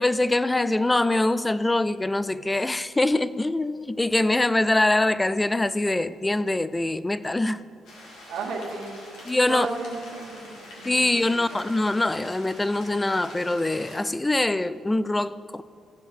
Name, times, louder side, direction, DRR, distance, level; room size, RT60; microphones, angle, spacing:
voice 1, 0.0-7.6 9.3-9.7 10.8-15.6, left 2 dB, 15° left, 0.4 m, -24 dB
sound 1, 7.8-14.0, left 1 dB, 80° left, 2.5 m, -45 dB
voice 2, 8.3-9.0 9.5-11.4, right 4 dB, 85° right, 1.6 m, -34 dB
15.5 x 5.4 x 6.1 m
cardioid pair, 90°, 0 cm